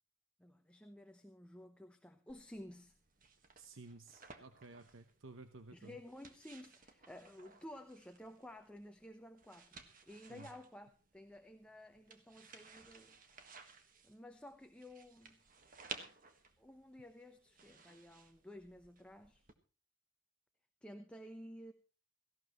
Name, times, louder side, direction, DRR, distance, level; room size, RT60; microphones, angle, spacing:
voice 1, 0.4-3.0 5.7-13.2 14.0-15.4 16.6-19.4 20.8-21.7, left 1 dB, 5° left, 6 dB, 0.9 m, -53 dB
sound 1, 2.3-19.5, right 5 dB, 40° right, 1.6 m, -57 dB
voice 2, 3.6-6.0 10.3-10.5, right 3 dB, 75° right, 9 dB, 1.0 m, -54 dB
17.5 x 15.5 x 3.1 m, 0.34 s
head